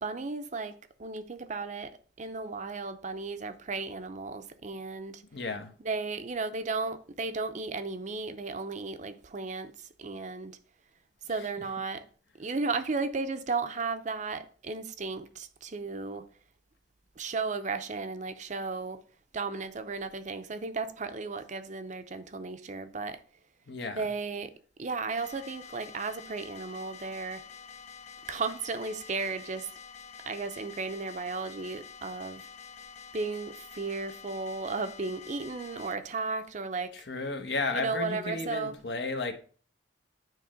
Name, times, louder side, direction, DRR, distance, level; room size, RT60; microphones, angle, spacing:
voice 1, 0.0-5.2 5.8-9.7 10.0-10.6 11.3-12.0 12.4-16.2 17.2-19.0 19.3-23.2 23.9-24.5 24.8-27.4 28.3-29.7 30.3-32.4 33.1-36.9 37.7-38.8, right 4 dB, 45° right, 0.6 m, -34 dB
voice 2, 5.3-5.7 23.7-24.0 37.1-39.3, left 3 dB, 75° left, 1.0 m, -33 dB
sound 1, 25.2-36.0, left 6 dB, 40° left, 0.5 m, -48 dB
9.4 x 3.2 x 5.1 m
head